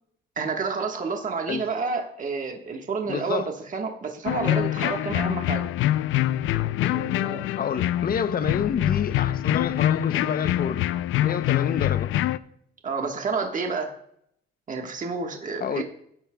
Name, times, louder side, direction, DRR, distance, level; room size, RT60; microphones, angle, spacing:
voice 1, 0.4-5.7 6.9-7.4 12.8-13.9 14.7-15.8, right 4 dB, 40° right, 1.4 m, -29 dB
voice 2, 3.1-3.5 7.5-10.9 11.2-12.1 15.6-15.8, left 7 dB, 50° left, 0.7 m, -28 dB
sound 1, 4.3-12.4, left 13 dB, 85° left, 0.4 m, -25 dB
15.5 x 10.5 x 2.3 m
cardioid pair, 90°, 20 cm